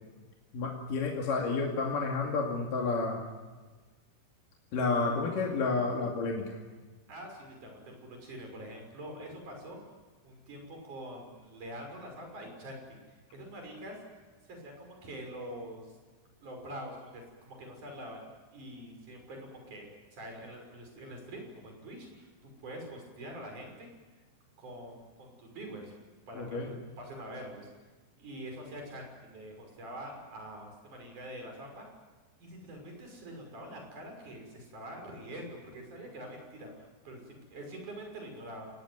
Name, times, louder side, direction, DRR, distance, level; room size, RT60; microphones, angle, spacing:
voice 1, 0.5-3.2 4.7-6.4 26.4-26.7, left 4 dB, 60° left, -1 dB, 3.9 m, -30 dB
voice 2, 7.1-9.9 10.2-14.0 14.4-16.0 16.4-18.2 18.5-23.9 24.6-25.9 26.3-27.7 28.2-31.9 32.4-38.7, right 1 dB, 50° right, 2 dB, 7.5 m, -45 dB
28.5 x 18.5 x 9.6 m, 1.3 s
omnidirectional pair, 4.6 m